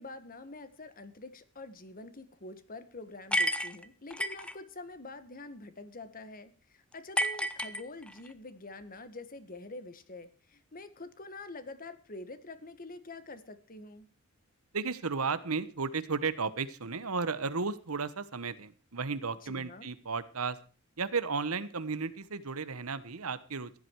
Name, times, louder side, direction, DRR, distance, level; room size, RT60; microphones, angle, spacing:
voice 1, 0.0-14.1 19.4-19.9, left 2 dB, 40° left, 12 dB, 1.6 m, -46 dB
sound 1, 3.3-4.5 7.2-8.3, equal, 5° left, 0.8 m, -31 dB
voice 2, 14.7-20.6 21.0-23.8, right 4 dB, 80° right, 14 dB, 1.2 m, -34 dB
16.0 x 11.0 x 4.7 m, 0.39 s
head